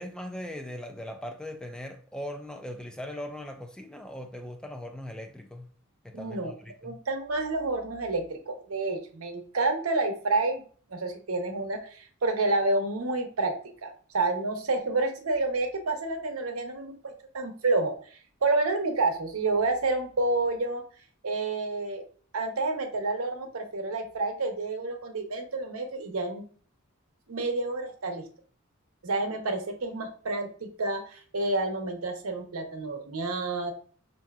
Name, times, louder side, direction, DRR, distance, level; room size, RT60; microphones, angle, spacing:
voice 1, 0.0-5.7 6.0-7.0, left 1 dB, 5° left, 0.3 m, -39 dB
voice 2, 6.1-6.5 6.8-10.6 10.9-13.5 13.8-17.9 18.4-20.8 21.2-22.0 22.3-26.4 27.3-28.2 29.0-33.7, right 2 dB, 90° right, 0.8 m, -29 dB
5.5 x 2.7 x 2.3 m
head